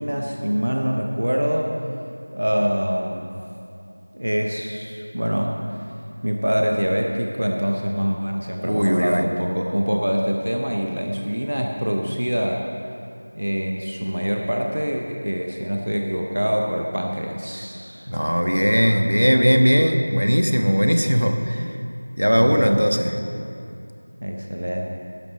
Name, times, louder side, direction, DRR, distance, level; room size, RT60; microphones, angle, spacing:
voice 1, 0.0-1.7 2.3-3.3 4.1-5.8 6.2-12.7 13.3-18.1 22.3-22.9 24.2-24.9, equal, 35° right, 1 dB, 0.8 m, -25 dB
voice 2, 8.6-9.2 18.1-21.7 22.2-23.2, equal, 80° right, 5 dB, 1.2 m, -19 dB
12.0 x 10.5 x 6.3 m, 2.6 s
figure-of-eight pair, 180°, 0 cm